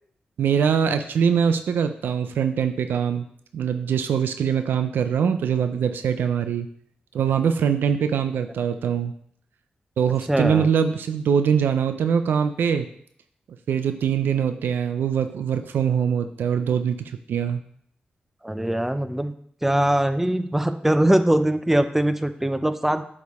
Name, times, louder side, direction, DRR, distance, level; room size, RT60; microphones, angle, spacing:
voice 1, 0.4-3.3 3.5-6.7 7.1-9.1 10.0-12.9 13.7-17.0 17.3-17.6, right 7 dB, 90° right, 9 dB, 0.4 m, -23 dB
voice 2, 10.3-10.7 18.4-19.3 19.6-23.0, right 1 dB, 10° right, 10 dB, 0.6 m, -22 dB
8.1 x 5.0 x 3.5 m, 0.65 s
cardioid pair, 65°, 3 cm